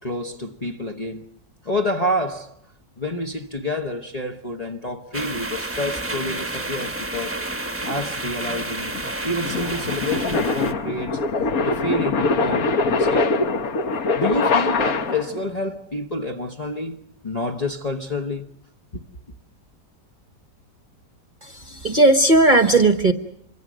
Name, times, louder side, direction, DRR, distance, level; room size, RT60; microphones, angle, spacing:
voice 1, 0.0-1.3 1.6-2.6 3.0-7.4 7.8-9.0 9.2-11.2 11.6-13.4 14.1-18.4, left 1 dB, 30° left, 1.0 m, -28 dB
sound 1, 5.1-10.7, right 2 dB, 10° right, 1.1 m, -30 dB
sound 2, 7.8-15.4, left 3 dB, 55° left, 1.6 m, -23 dB
voice 2, 21.4-23.1, right 2 dB, 35° right, 1.0 m, -16 dB
26.0 x 24.0 x 6.3 m
omnidirectional pair, 1.8 m